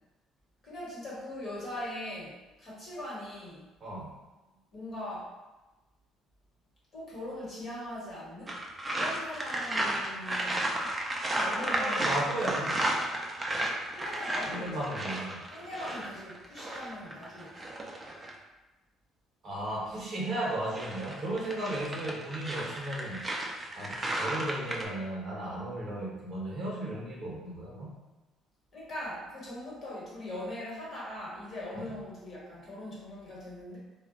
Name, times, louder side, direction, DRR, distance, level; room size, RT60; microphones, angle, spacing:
voice 1, 0.6-3.7 4.7-5.3 6.9-8.6 8.9-11.0 11.3-12.4 13.9-14.9 15.5-17.7 28.7-33.8, left 1 dB, 35° left, -6 dB, 1.1 m, -41 dB
voice 2, 3.8-4.2 11.5-12.9 14.5-15.4 19.4-23.2 23.8-27.9 31.9-32.0, right 1 dB, 35° right, -4 dB, 0.7 m, -35 dB
sound 1, 8.5-18.4 20.5-24.9, right 1 dB, 15° right, 0.3 m, -33 dB
2.2 x 2.1 x 3.7 m, 1.1 s
cardioid pair, 150°, 0 cm